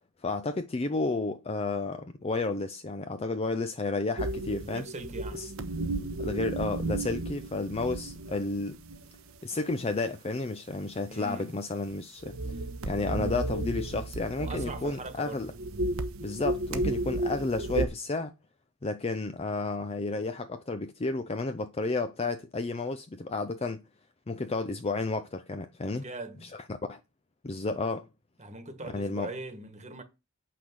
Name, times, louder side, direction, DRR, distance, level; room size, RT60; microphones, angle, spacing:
voice 1, 0.2-4.8 5.3-5.5 6.2-8.8 9.4-12.6 12.9-15.5 16.2-18.3 18.8-23.8 24.3-26.0 26.4-26.5 26.9-27.0 27.4-28.1 28.8-29.3, left 3 dB, 30° left, 0.5 m, -32 dB
sound 1, 4.2-9.3 9.8-10.0 11.9-12.0 12.2-15.1 15.4-17.9, right 2 dB, 75° right, 1.1 m, -33 dB
voice 2, 4.6-5.5 11.1-11.6 14.4-15.5 25.9-26.5 28.4-30.0, right 2 dB, 35° right, 1.5 m, -41 dB
8.6 x 5.9 x 6.3 m
head